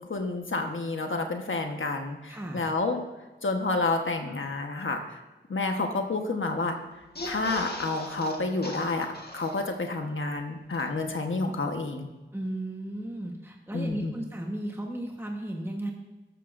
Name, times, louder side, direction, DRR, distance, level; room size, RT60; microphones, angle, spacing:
voice 1, 0.1-3.0 3.4-5.2 5.5-6.8 7.2-9.1 9.3-12.1 13.7-14.1, left 3 dB, 85° left, 4 dB, 1.3 m, -29 dB
voice 2, 2.3-2.7 12.3-15.9, right 1 dB, 10° right, 1 dB, 1.3 m, -35 dB
sound 1, 7.0-10.0 10.4-10.5 10.7-10.8, left 1 dB, 55° left, 1.6 m, -39 dB
13.0 x 13.0 x 2.6 m, 1.1 s
wide cardioid pair, 75°, 20 cm